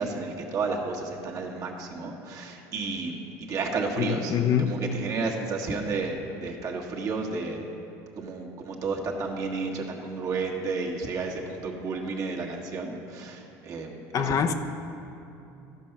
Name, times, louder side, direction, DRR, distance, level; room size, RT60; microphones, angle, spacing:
voice 1, 0.0-7.6 8.2-14.4, right 4 dB, 45° right, 0 dB, 1.5 m, -32 dB
voice 2, 4.0-4.8 14.1-14.5, left 8 dB, 45° left, 7 dB, 0.6 m, -24 dB
13.0 x 5.5 x 5.9 m, 2.8 s
supercardioid pair, 105°, 8 cm